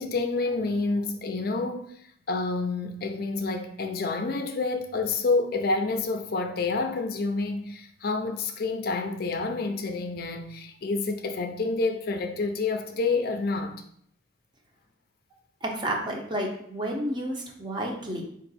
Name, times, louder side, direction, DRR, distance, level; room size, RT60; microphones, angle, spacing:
voice 1, 0.0-2.0 2.3-13.8, left 3 dB, 50° left, 0.4 m, -28 dB
voice 2, 15.6-18.2, right 1 dB, 25° right, 0.7 m, -31 dB
4.6 x 2.5 x 4.0 m
head